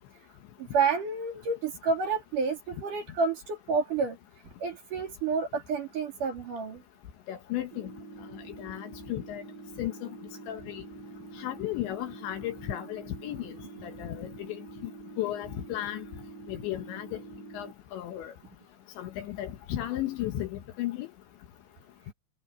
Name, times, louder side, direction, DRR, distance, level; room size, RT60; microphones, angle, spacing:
voice 1, 0.6-4.2 4.6-6.8, right 5 dB, 45° right, 3.6 m, -29 dB
voice 2, 7.3-7.9 8.6-9.4 9.8-10.1 10.5-10.8 11.4-14.9 15.2-16.0 16.5-17.2 17.5-18.3 19.0-21.1, left 13 dB, 70° left, 3.2 m, -35 dB
sound 1, 7.7-17.7, right 3 dB, 65° right, 6.0 m, -46 dB
omnidirectional pair, 6.0 m